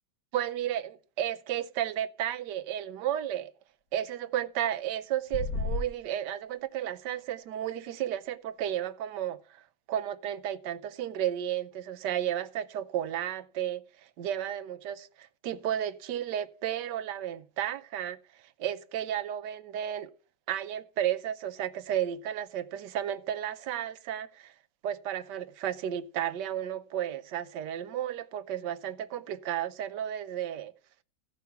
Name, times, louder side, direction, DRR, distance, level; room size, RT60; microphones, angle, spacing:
voice 1, 0.3-3.5 3.9-9.4 9.9-13.8 14.2-18.2 18.6-20.1 20.5-24.5 24.8-30.7, right 11 dB, 85° right, 1.3 m, -33 dB
sound 1, 5.3-5.9, left 3 dB, 60° left, 1.6 m, -31 dB
14.5 x 5.6 x 5.6 m
omnidirectional pair, 1.8 m